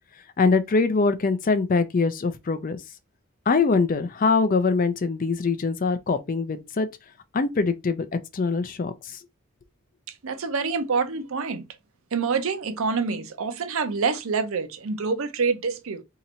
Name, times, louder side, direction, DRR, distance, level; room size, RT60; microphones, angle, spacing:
voice 1, 0.4-2.8 3.5-6.9 7.3-8.1 8.3-9.2, left 4 dB, 40° left, 0.4 m, -23 dB
voice 2, 10.1-11.6 12.1-16.0, right 5 dB, 65° right, 0.6 m, -26 dB
2.8 x 2.5 x 4.1 m
head